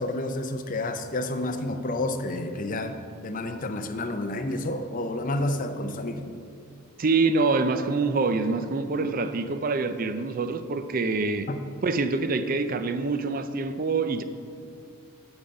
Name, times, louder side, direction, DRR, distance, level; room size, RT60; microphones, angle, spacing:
voice 1, 0.0-6.4 11.5-11.6, left 1 dB, 40° left, 8 dB, 0.6 m, -30 dB
voice 2, 7.0-11.5 11.8-14.2, right 3 dB, 40° right, 10 dB, 0.4 m, -25 dB
8.8 x 7.1 x 5.2 m, 2.4 s
head